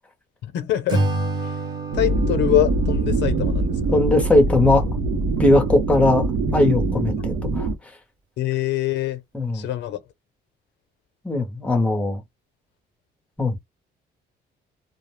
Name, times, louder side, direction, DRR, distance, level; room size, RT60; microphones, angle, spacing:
voice 1, 0.4-1.1 1.4-1.6 1.9-4.0 8.4-9.2 9.5-10.0, left 13 dB, 85° left, 0.7 m, -24 dB
Acoustic guitar / Strum, 0.9-4.2, right 2 dB, 25° right, 0.9 m, -28 dB
sound 1, 1.9-7.7, right 3 dB, 65° right, 0.7 m, -23 dB
voice 2, 3.9-4.9 5.4-6.3 6.5-7.7 9.3-9.6 11.2-12.2 13.4-13.6, left 2 dB, 5° left, 0.6 m, -19 dB
2.3 x 2.0 x 3.1 m
cardioid pair, 180°, 18 cm